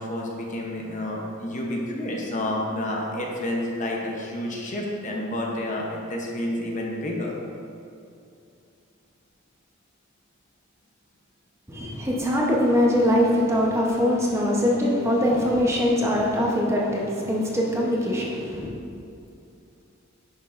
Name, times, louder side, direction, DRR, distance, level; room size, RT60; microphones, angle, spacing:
voice 1, 0.0-7.3, left 1 dB, 35° left, -1 dB, 0.9 m, -29 dB
voice 2, 11.7-18.7, left 1 dB, 15° right, -3 dB, 0.9 m, -22 dB
10.0 x 6.2 x 2.6 m, 2.6 s
head